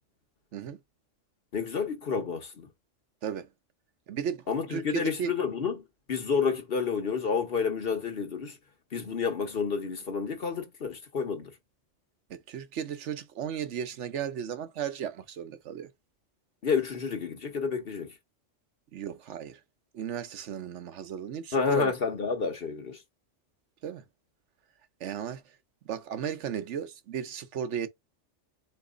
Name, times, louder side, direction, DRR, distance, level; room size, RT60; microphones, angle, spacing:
voice 1, 1.5-2.7 4.5-5.8 6.1-8.5 8.9-11.5 16.6-18.1 21.5-23.0, left 5 dB, 50° left, 1.4 m, -29 dB
voice 2, 4.1-4.4 4.7-5.3 12.3-15.9 18.9-19.6 19.9-21.9 23.8-24.0 25.0-25.4 25.9-27.9, right 8 dB, 70° right, 1.1 m, -35 dB
4.1 x 3.1 x 3.7 m
omnidirectional pair, 1.3 m